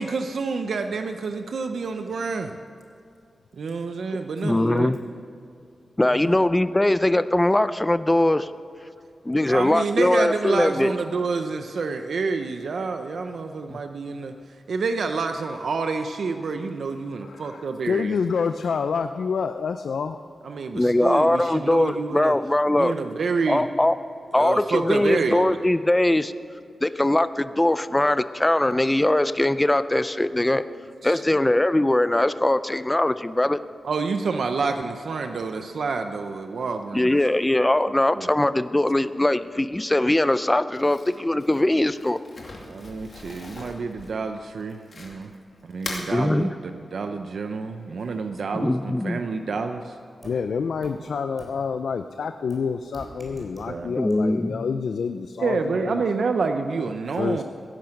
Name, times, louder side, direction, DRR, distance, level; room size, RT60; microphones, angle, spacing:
voice 1, 0.0-2.6 3.5-5.0 6.1-6.5 9.5-18.2 20.4-22.4 22.7-23.7 24.3-25.6 31.0-31.4 33.8-37.1 38.2-38.3 42.6-45.3 45.6-46.5 46.9-50.0 53.6-54.0 55.4-57.4, right 4 dB, 75° right, 6 dB, 0.7 m, -28 dB
voice 2, 4.4-5.0 6.0-8.5 9.3-10.9 13.7-13.8 20.7-23.0 23.5-24.0 24.3-26.3 26.8-30.6 31.0-33.6 36.9-42.2 46.1-46.5 48.5-49.2 54.0-54.7, left 1 dB, 15° left, 13 dB, 0.5 m, -21 dB
voice 3, 17.2-17.6 17.9-20.2 50.2-56.0 57.2-57.4, left 5 dB, 85° left, 8 dB, 0.5 m, -28 dB
Crumpling crinkling, 40.8-45.4 45.7-46.1, left 2 dB, 50° left, 2.5 m, -39 dB
sound 1, 50.2-50.3 50.8-50.9 51.4-51.5 52.5-52.6 52.9-53.7 54.1-54.2, right 1 dB, 35° right, 3.6 m, -42 dB
16.5 x 10.5 x 6.5 m, 2.4 s
wide cardioid pair, 110°, 0 cm